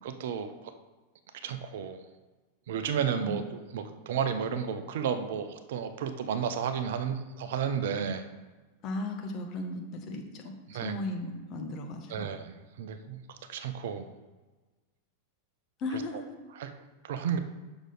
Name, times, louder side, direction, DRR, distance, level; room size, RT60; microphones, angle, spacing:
voice 1, 0.0-0.5 1.4-2.0 2.7-8.2 10.7-10.9 12.1-13.2 13.5-14.0 15.9-16.0 16.6-16.7 17.0-17.4, right 7 dB, 55° right, 9 dB, 0.6 m, -32 dB
voice 2, 8.8-12.3 15.8-16.3, left 2 dB, 35° left, 3 dB, 1.2 m, -36 dB
6.5 x 6.1 x 3.9 m, 1.2 s
figure-of-eight pair, 90°, 0 cm